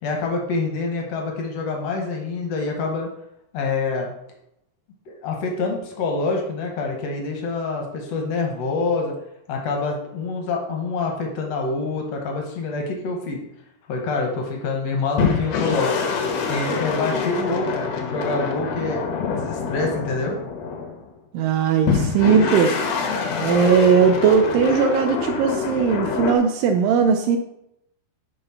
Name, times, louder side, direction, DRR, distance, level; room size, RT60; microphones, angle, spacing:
voice 1, 0.0-3.1 3.5-4.1 5.1-9.1 9.5-13.4 13.9-15.9 16.5-20.4, left 3 dB, 75° left, 1 dB, 1.5 m, -26 dB
sound 1, 15.2-21.1 21.9-26.4, left 5 dB, 90° left, 3.0 m, -25 dB
voice 2, 21.3-22.9 23.4-27.4, right 6 dB, 80° right, 4 dB, 2.0 m, -18 dB
7.1 x 3.9 x 5.5 m, 0.79 s
omnidirectional pair, 4.3 m